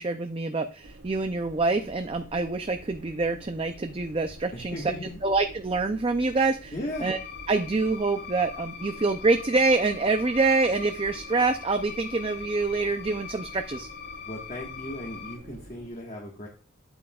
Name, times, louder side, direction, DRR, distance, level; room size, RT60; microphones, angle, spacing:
voice 1, 0.0-4.8 5.2-6.7 7.0-7.2 7.5-13.9, right 3 dB, 25° right, 7 dB, 0.4 m, -26 dB
sound 1, 0.8-15.9, right 1 dB, 75° right, 1.3 m, -48 dB
voice 2, 4.5-5.2 6.7-7.1 14.2-16.5, left 1 dB, 35° left, -2 dB, 1.4 m, -37 dB
sound 2, 6.9-15.4, left 7 dB, 50° left, 1.1 m, -42 dB
8.9 x 8.4 x 2.3 m, 0.37 s
head